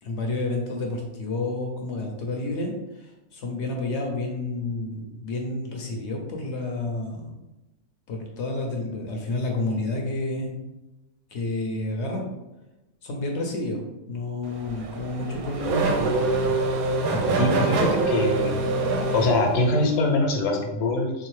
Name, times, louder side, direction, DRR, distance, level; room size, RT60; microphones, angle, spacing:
voice 1, 0.0-7.3 8.1-10.5 11.3-12.2 13.0-13.8 14.1-16.6 17.1-17.7, left 2 dB, 60° left, 2 dB, 0.7 m, -30 dB
Race car auto racing / Accelerating revving vroom, 14.5-20.0, right 3 dB, 75° right, 1.0 m, -25 dB
voice 2, 17.4-18.5 19.1-21.3, left 2 dB, 85° left, 2 dB, 1.2 m, -23 dB
3.5 x 2.7 x 3.1 m, 1.0 s
omnidirectional pair, 1.6 m